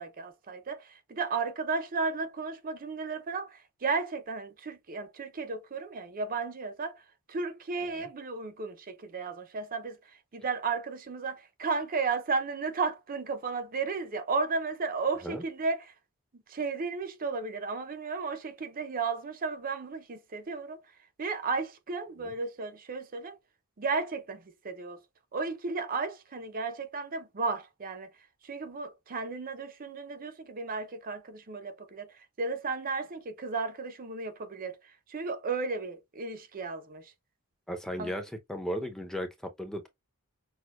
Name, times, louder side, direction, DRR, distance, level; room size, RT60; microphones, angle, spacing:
voice 1, 0.0-7.0 7.3-15.9 16.3-20.9 21.2-23.4 23.8-25.0 25.3-28.1 28.4-37.1 38.0-38.2, right 4 dB, 40° right, 0.6 m, -34 dB
voice 2, 37.7-39.9, equal, ahead, 0.6 m, -36 dB
6.2 x 2.2 x 2.3 m
head